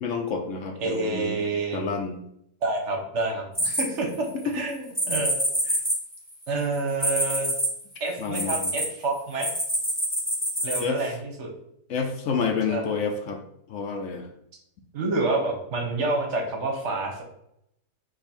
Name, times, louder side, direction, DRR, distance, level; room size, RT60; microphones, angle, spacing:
voice 1, 0.0-1.4 1.7-2.2 4.4-4.6 8.2-8.7 10.8-11.1 11.9-13.4 13.7-14.3, left 5 dB, 70° left, 4 dB, 0.7 m, -29 dB
voice 2, 0.8-1.8 2.6-5.4 5.6-5.8 6.5-7.5 8.0-9.5 10.6-11.5 12.7-12.8 14.9-17.2, right 3 dB, 50° right, 2 dB, 0.9 m, -28 dB
sound 1, 3.6-4.4 5.0-8.9 9.4-10.8, equal, 5° left, 1.3 m, -26 dB
5.1 x 2.5 x 4.1 m, 0.75 s
omnidirectional pair, 1.8 m